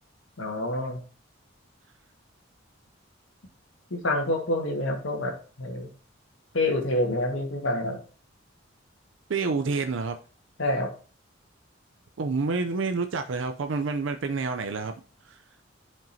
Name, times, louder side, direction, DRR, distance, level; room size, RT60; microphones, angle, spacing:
voice 1, 0.4-1.0 3.9-5.9 6.5-8.0 10.6-10.9, left 1 dB, 85° left, 1.7 m, -27 dB
voice 2, 9.3-10.2 12.2-14.9 15.3-15.4, right 4 dB, 75° right, 0.5 m, -28 dB
10.5 x 5.2 x 2.7 m
head